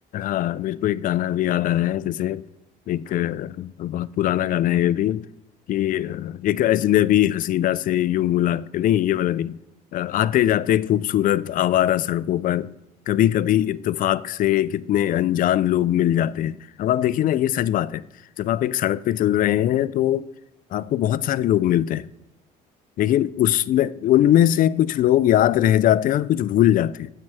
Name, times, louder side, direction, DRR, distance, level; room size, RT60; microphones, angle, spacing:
voice 1, 0.1-2.4 2.9-5.2 5.7-9.6 9.9-12.7 13.1-18.0 18.4-20.3 20.7-22.1 23.0-27.1, left 12 dB, 55° left, 0.4 m, -21 dB
8.8 x 7.6 x 4.8 m
cardioid pair, 110°, 17 cm